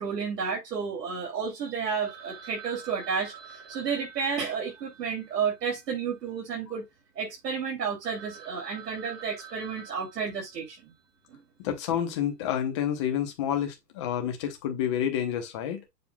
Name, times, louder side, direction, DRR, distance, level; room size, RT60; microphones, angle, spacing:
voice 1, 0.0-6.8 7.2-10.9 11.3-11.4, right 6 dB, 75° right, 3.3 m, -31 dB
Telephone, 2.0-6.4 6.6-6.7 7.3-7.4 7.7-7.8 8.0-11.0, right 6 dB, 15° right, 0.8 m, -48 dB
voice 2, 11.6-15.8, left 9 dB, 20° left, 0.8 m, -29 dB
7.4 x 2.5 x 5.7 m
hypercardioid pair, 170°, 49 cm